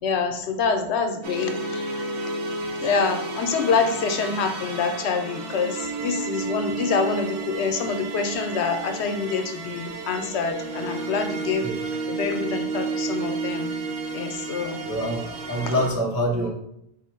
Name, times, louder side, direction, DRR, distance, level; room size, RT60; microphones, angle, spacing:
voice 1, 0.0-2.0 2.8-11.7 12.1-13.7 14.1-14.8, left 5 dB, 80° left, 6 dB, 0.9 m, -26 dB
sound 1, 1.2-15.9, right 3 dB, 80° right, 1.0 m, -32 dB
voice 2, 14.8-16.5, equal, 30° right, -2 dB, 0.3 m, -25 dB
4.3 x 2.1 x 4.3 m, 0.75 s
omnidirectional pair, 1.1 m